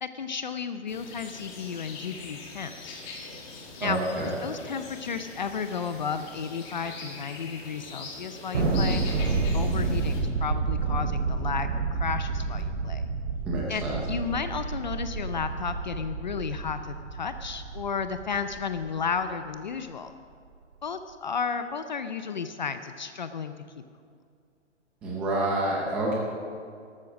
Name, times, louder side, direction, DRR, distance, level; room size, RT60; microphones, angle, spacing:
voice 1, 0.0-3.0 3.8-4.0 4.4-9.0 9.5-13.0 13.7-13.8 14.1-20.1 20.8-23.5, left 6 dB, 40° left, 10 dB, 0.5 m, -33 dB
sound 1, 0.9-10.2, left 3 dB, 15° left, 1.5 m, -43 dB
voice 2, 3.8-4.3 13.5-14.0 25.0-26.2, right 1 dB, 5° right, -4 dB, 0.6 m, -28 dB
Thunder, 8.5-19.2, right 4 dB, 70° right, 3.5 m, -29 dB
13.0 x 13.0 x 6.3 m, 2.2 s
hypercardioid pair, 170°, 36 cm